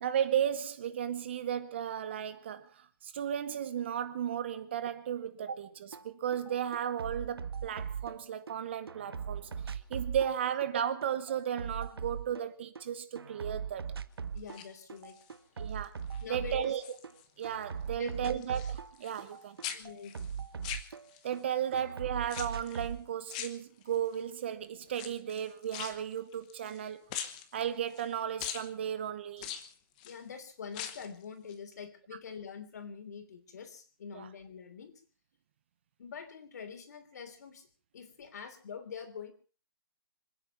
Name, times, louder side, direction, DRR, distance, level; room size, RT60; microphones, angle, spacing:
voice 1, 0.0-13.9 15.6-16.0 16.3-17.0 17.4-19.6 21.2-27.1 27.5-29.5 34.1-34.3, right 9 dB, 30° right, 0.8 m, -35 dB
sound 1, 5.9-6.0 6.3-8.5 8.9-12.8 13.1-14.6 14.9-17.1 17.4-21.4 21.7-23.0, right 7 dB, 80° right, 1.2 m, -40 dB
voice 2, 14.3-15.2 16.2-16.8 17.9-18.6 19.7-20.7 30.0-35.0 36.0-37.7 37.9-39.3, left 6 dB, 45° left, 3.2 m, -45 dB
sound 2, 14.4-15.3 15.8-16.2 16.5-17.6 17.8-19.4 19.6-21.4 22.3-22.9 23.3-24.2 24.9-26.8 27.1-28.1 28.4-28.7 29.4-30.2 30.6-31.2 31.5-31.6, left 10 dB, 20° left, 1.1 m, -42 dB
26.0 x 9.8 x 5.5 m
hypercardioid pair, 170°, 12 cm